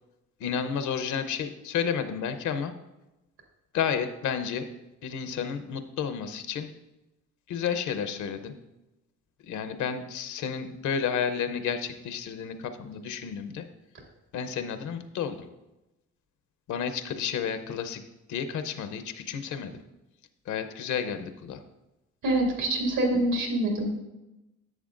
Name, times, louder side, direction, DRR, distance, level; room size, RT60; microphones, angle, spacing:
voice 1, 0.4-2.7 3.7-4.7 5.0-6.7 7.5-8.5 9.5-13.6 14.3-15.5 16.7-18.0 18.3-19.8 20.5-21.6, left 7 dB, 75° left, 10 dB, 0.8 m, -31 dB
voice 2, 22.2-23.9, right 1 dB, 80° right, 0 dB, 2.4 m, -25 dB
11.0 x 7.2 x 2.5 m, 0.97 s
cardioid pair, 90°, 30 cm